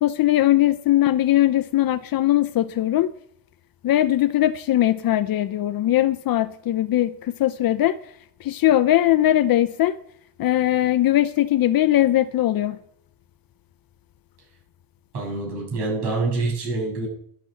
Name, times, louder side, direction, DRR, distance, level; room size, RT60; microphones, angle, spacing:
voice 1, 0.0-3.1 3.8-8.0 8.4-9.9 10.4-12.8, left 13 dB, 45° left, 0.7 m, -20 dB
voice 2, 15.1-17.1, right 3 dB, 55° right, 7.9 m, -26 dB
12.0 x 8.7 x 7.9 m
cardioid pair, 155°, 48 cm